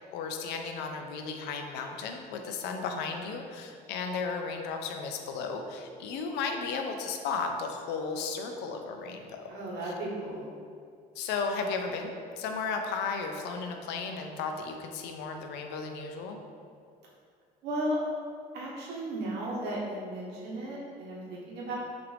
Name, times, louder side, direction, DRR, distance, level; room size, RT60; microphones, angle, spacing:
voice 1, 0.1-9.5 11.2-16.4, left 4 dB, 90° left, 4 dB, 0.5 m, -34 dB
voice 2, 2.6-3.0 9.5-10.5 17.6-18.0 18.5-21.8, right 1 dB, 80° right, -4 dB, 1.2 m, -35 dB
5.8 x 2.5 x 3.3 m, 2.3 s
cardioid pair, 110°, 17 cm